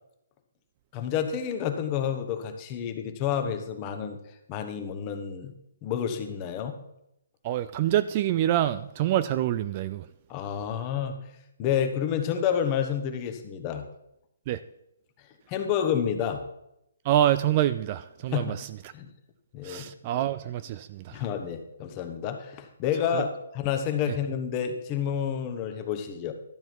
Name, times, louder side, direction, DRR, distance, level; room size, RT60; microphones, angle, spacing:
voice 1, 0.9-4.2 4.5-5.5 5.8-6.7 10.3-11.2 11.6-13.9 15.5-16.5 18.3-18.6 18.9-19.1 19.5-19.9 21.1-26.3, left 8 dB, 25° left, 6 dB, 1.1 m, -29 dB
voice 2, 7.4-10.1 14.5-14.6 17.0-18.7 19.6-21.2 23.1-23.3 24.1-24.2, right 12 dB, 30° right, 13 dB, 0.3 m, -26 dB
12.5 x 7.7 x 4.6 m, 0.82 s
hypercardioid pair, 165°, 0 cm